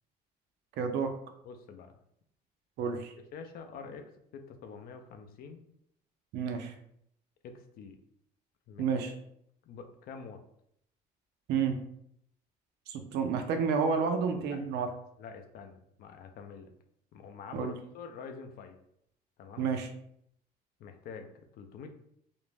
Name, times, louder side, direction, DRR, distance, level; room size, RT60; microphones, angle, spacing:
voice 1, 0.8-1.1 2.8-3.1 6.3-6.7 8.8-9.1 11.5-11.8 12.9-14.9 17.5-17.7 19.6-19.9, right 6 dB, 80° right, 5 dB, 0.5 m, -30 dB
voice 2, 1.4-1.9 3.3-5.6 7.4-8.0 8.7-9.1 9.6-10.4 14.5-16.7 17.1-18.8 19.4-19.7 20.8-21.9, left 5 dB, 60° left, 6 dB, 0.4 m, -46 dB
2.5 x 2.1 x 3.2 m, 0.72 s
cardioid pair, 110°, 17 cm